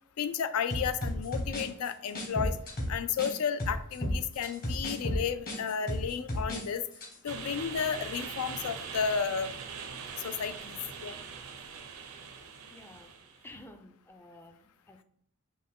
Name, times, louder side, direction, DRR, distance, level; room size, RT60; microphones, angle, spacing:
voice 1, 0.2-2.6 2.9-6.8 7.2-9.5 10.2-11.1, left 7 dB, 75° left, 11 dB, 0.4 m, -32 dB
sound 1, 0.7-3.3 3.6-6.6 6.9-7.1, equal, 40° left, 1.2 m, -33 dB
sound 2, 7.3-13.5, right 6 dB, 80° right, 0.6 m, -42 dB
voice 2, 12.7-13.1 13.4-15.0, left 1 dB, 10° left, 5 dB, 0.4 m, -52 dB
5.4 x 2.2 x 3.6 m, 0.65 s
head